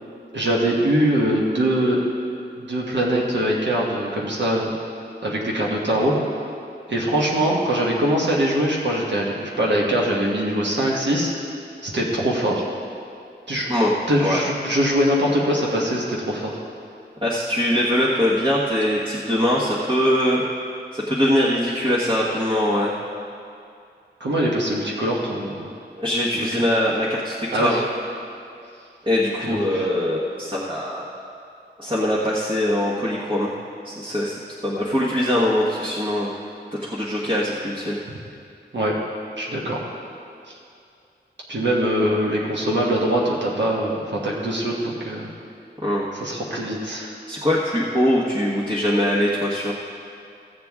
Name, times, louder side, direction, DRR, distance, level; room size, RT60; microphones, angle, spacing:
voice 1, 0.3-2.0 2.6-4.8 5.2-6.3 6.9-11.3 11.8-12.6 13.5-13.7 14.1-16.6 24.2-25.6 26.3-26.5 27.5-27.8 29.4-29.9 38.7-39.0 39.4-39.8 41.5-45.3 46.1-47.1, right 1 dB, 80° right, -3 dB, 1.4 m, -22 dB
voice 2, 17.2-20.4 20.9-22.9 26.0-27.8 29.0-31.0 31.8-33.5 33.8-36.3 36.8-38.0 45.8-46.1 47.3-49.7, left 1 dB, 25° right, -5 dB, 1.3 m, -22 dB
16.0 x 7.7 x 3.6 m, 2.5 s
wide cardioid pair, 75°, 18 cm